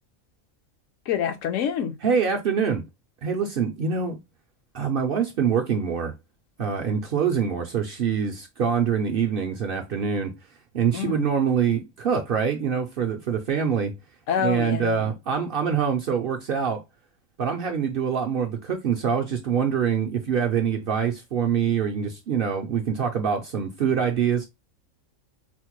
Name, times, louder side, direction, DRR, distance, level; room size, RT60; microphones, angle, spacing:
voice 1, 1.1-2.0 10.9-11.3 14.3-15.1, left 8 dB, 75° left, 1.0 m, -27 dB
voice 2, 2.0-2.8 3.2-4.2 4.7-6.1 6.6-10.3 10.7-13.9 14.4-16.8 17.4-24.5, right 7 dB, 60° right, 0.6 m, -25 dB
4.3 x 2.1 x 2.9 m
omnidirectional pair, 1.3 m